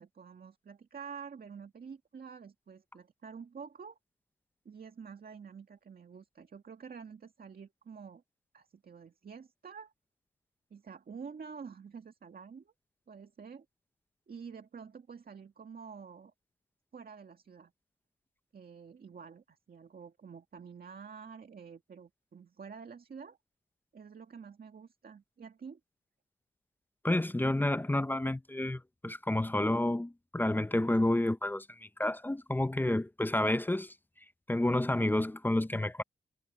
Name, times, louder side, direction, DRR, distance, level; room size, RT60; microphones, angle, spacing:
voice 1, 0.0-4.0 4.7-8.2 8.5-9.9 10.7-12.7 13.1-13.7 14.3-16.3 16.9-17.7 18.5-23.4 23.9-25.8, right 6 dB, 55° right, 2.0 m, -48 dB
voice 2, 27.0-33.9 34.5-36.0, left 1 dB, 10° left, 0.5 m, -30 dB
cardioid pair, 90°, 19 cm